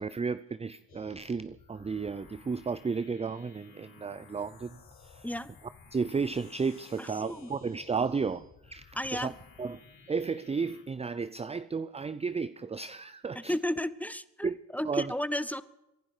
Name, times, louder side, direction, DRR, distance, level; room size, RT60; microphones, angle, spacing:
voice 1, 0.0-4.8 5.0-5.3 5.9-8.9 9.1-9.3 9.6-9.8 10.1-13.5 14.4-14.6 14.8-15.1, right 5 dB, 15° right, 0.5 m, -33 dB
sound 1, 0.9-10.8, left 5 dB, 55° left, 3.4 m, -55 dB
voice 2, 7.0-7.5 8.9-9.3 13.3-15.6, left 1 dB, 5° left, 0.8 m, -33 dB
24.5 x 11.5 x 5.0 m
supercardioid pair, 65°, 44 cm